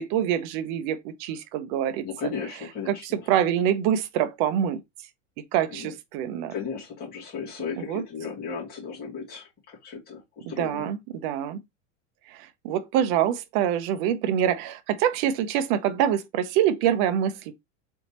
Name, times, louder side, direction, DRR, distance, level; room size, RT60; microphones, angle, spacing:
voice 1, 0.0-2.1 2.9-4.8 5.5-6.5 7.8-8.0 10.4-11.6 12.3-17.5, right 10 dB, 40° right, 0.6 m, -25 dB
voice 2, 2.0-3.3 5.7-5.9 6.5-10.9, left 6 dB, 25° left, 2.4 m, -35 dB
4.1 x 3.5 x 2.9 m
supercardioid pair, 160°, 38 cm